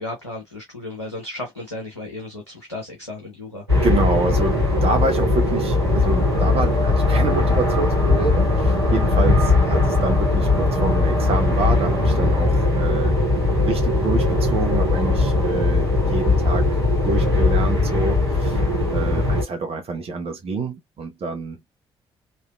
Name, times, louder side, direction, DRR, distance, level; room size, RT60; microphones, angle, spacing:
voice 1, 0.0-3.6, left 2 dB, 90° left, 0.6 m, -34 dB
sound 1, 3.7-19.4, left 2 dB, 90° right, 1.1 m, -19 dB
voice 2, 3.8-13.2 13.7-16.7 17.0-18.6 18.9-21.6, right 3 dB, 45° right, 1.0 m, -27 dB
3.2 x 2.6 x 2.3 m
figure-of-eight pair, 40°, 14 cm